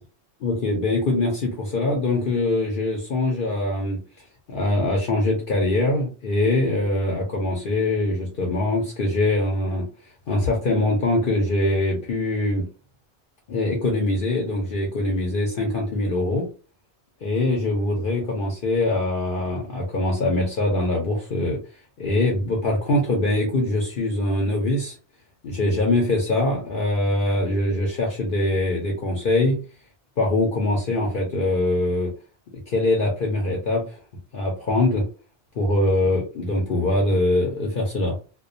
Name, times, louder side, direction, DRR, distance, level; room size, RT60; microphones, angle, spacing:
voice 1, 0.4-4.0 4.5-9.8 10.3-12.6 13.5-16.5 17.2-21.6 22.0-24.9 25.4-29.6 30.2-32.1 32.7-34.0 34.3-35.1 35.6-38.2, left 2 dB, 55° left, -1 dB, 0.8 m, -23 dB
2.3 x 2.2 x 2.5 m, 0.34 s
omnidirectional pair, 1.1 m